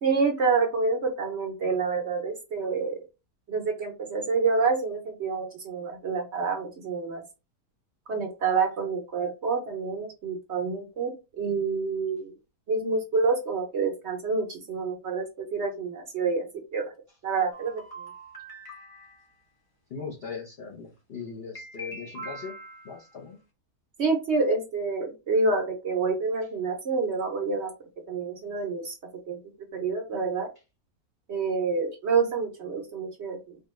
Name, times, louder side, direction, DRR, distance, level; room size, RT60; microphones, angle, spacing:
voice 1, 0.0-3.0 3.5-7.2 8.1-12.3 12.7-16.9 17.2-17.8 24.0-27.7 28.1-28.9 29.3-29.4 29.7-30.5 31.3-33.6, right 4 dB, 55° right, 3 dB, 0.8 m, -27 dB
sound 1, 17.5-19.4 21.5-23.0, right 1 dB, 20° left, 0.6 m, -43 dB
voice 2, 19.9-22.5 22.8-23.4, left 5 dB, 50° left, -1 dB, 0.8 m, -39 dB
4.4 x 2.3 x 3.0 m, 0.28 s
omnidirectional pair, 1.8 m